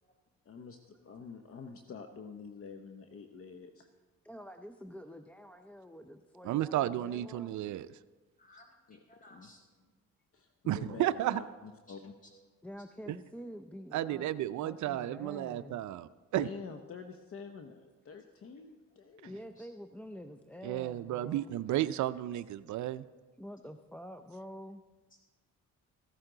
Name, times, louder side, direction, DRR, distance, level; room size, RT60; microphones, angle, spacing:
voice 1, 0.4-3.9 8.9-9.0 9.3-9.5 10.3-12.1 16.3-19.5, left 5 dB, 50° left, 6 dB, 0.9 m, -47 dB
voice 2, 4.2-7.5 12.6-15.8 19.2-21.6 23.4-24.8, equal, 5° left, 6 dB, 0.5 m, -47 dB
voice 3, 6.4-7.9 10.7-11.4 13.1-13.2 13.9-16.5 20.6-23.1, right 13 dB, 70° right, 14 dB, 0.5 m, -33 dB
voice 4, 8.4-9.9 11.9-12.0 12.3-12.4 19.6-19.7 25.1-25.2, left 1 dB, 25° left, 0 dB, 4.9 m, -60 dB
14.5 x 12.5 x 3.9 m, 1.3 s
cardioid pair, 90°, 30 cm